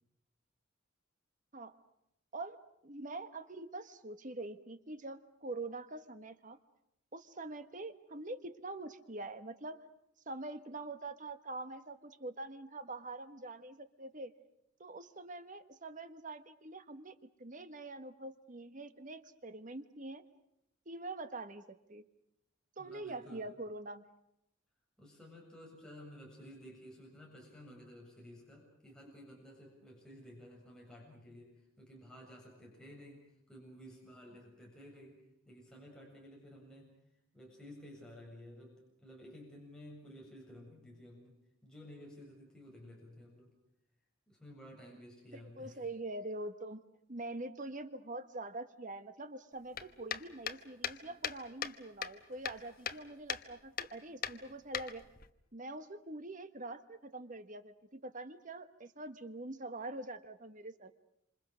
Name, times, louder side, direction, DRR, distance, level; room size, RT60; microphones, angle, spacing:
voice 1, 2.8-6.6 7.1-9.8 10.3-14.3 14.8-20.2 20.8-22.0 22.8-24.1 45.3-46.8 47.1-55.0 55.5-60.9, right 2 dB, 40° right, 10 dB, 1.4 m, -44 dB
voice 2, 22.8-23.5 25.0-35.2 35.5-36.9 37.3-43.5 44.3-45.8, equal, 5° left, -3 dB, 7.4 m, -53 dB
sound 1, 49.7-51.8 52.0-53.0 53.3-53.5 53.8-53.9 54.2-55.3, left 8 dB, 45° left, 1.2 m, -39 dB
27.5 x 27.0 x 6.4 m, 0.79 s
head